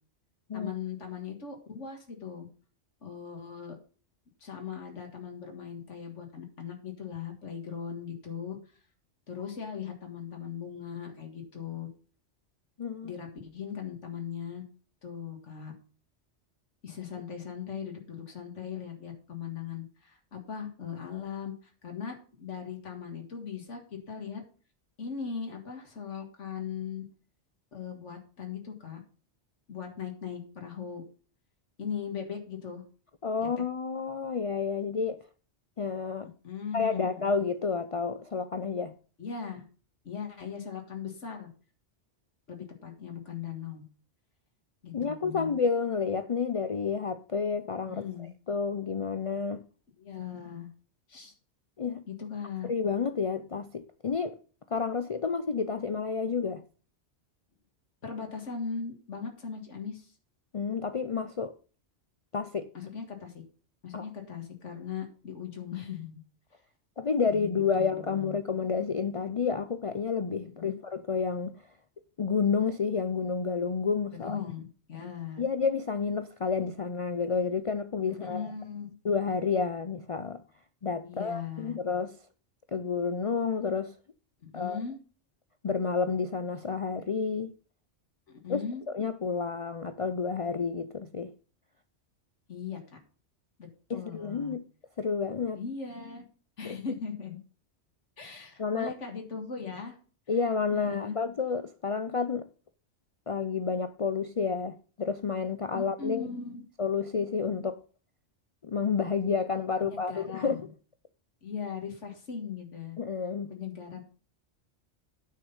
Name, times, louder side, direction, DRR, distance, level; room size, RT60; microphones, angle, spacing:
voice 1, 0.5-2.5 3.0-3.8 4.4-8.6 9.3-11.9 13.0-14.6 15.0-15.7 16.8-24.4 25.0-27.0 27.7-29.0 29.7-31.0 31.8-32.8 33.4-33.5 36.4-37.3 39.2-39.6 40.0-41.5 42.5-43.8 44.8-45.6 47.8-48.3 50.0-50.7 51.1-51.3 52.1-52.7 58.0-60.1 62.7-63.3 63.8-66.2 67.3-67.4 67.7-68.4 70.4-70.8 74.1-75.4 78.1-78.9 81.0-81.8 84.4-85.0 88.3-88.8 92.5-92.8 93.6-94.5 95.5-96.2 96.6-97.4 98.2-100.0 100.7-101.2 105.7-106.6 109.9-110.7 111.4-113.0 113.5-114.0, left 7 dB, 85° left, 2.1 m, -39 dB
voice 2, 12.8-13.1 33.2-35.2 35.8-36.3 36.7-38.9 44.9-48.0 48.5-49.6 51.8-52.0 52.6-54.4 54.7-56.6 60.5-61.5 62.3-62.7 63.9-64.0 67.0-71.6 72.2-74.4 75.4-78.5 79.0-80.4 80.8-82.2 82.7-83.9 84.5-84.8 85.6-87.5 88.5-88.6 88.9-91.3 93.9-94.6 95.0-95.6 96.6-96.8 98.6-98.9 100.3-102.5 103.3-106.2 106.8-107.8 108.6-110.6 113.0-113.5, left 5 dB, 55° left, 0.4 m, -30 dB
9.3 x 6.5 x 5.5 m
omnidirectional pair, 1.2 m